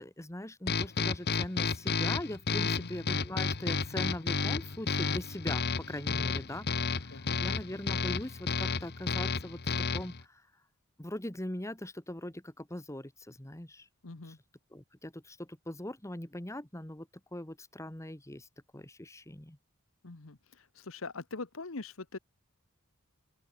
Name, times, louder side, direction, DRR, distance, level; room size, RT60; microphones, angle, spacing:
voice 1, 0.0-10.4 11.0-13.9 14.3-14.4 14.7-18.5 18.7-19.6, left 1 dB, 15° left, 1.5 m, -41 dB
sound 1, 0.7-10.2, left 4 dB, 50° left, 1.1 m, -32 dB
voice 2, 7.1-7.4 14.0-14.4 20.0-20.4 20.8-22.2, left 3 dB, 70° left, 1.2 m, -42 dB
open air
head